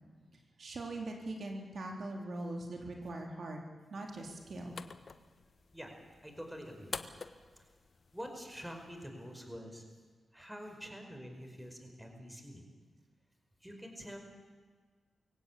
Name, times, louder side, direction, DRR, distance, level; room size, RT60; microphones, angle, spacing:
voice 1, 0.6-3.6 3.9-4.8, right 2 dB, 65° right, 1 dB, 3.7 m, -41 dB
sound 1, 4.1-9.1, left 5 dB, 60° left, 1.3 m, -49 dB
voice 2, 6.2-7.0 7.5-7.6 8.1-9.8 10.3-12.6 13.6-14.2, equal, 5° right, 4 dB, 5.1 m, -46 dB
24.0 x 16.5 x 8.7 m, 1.5 s
cardioid pair, 65°, 0 cm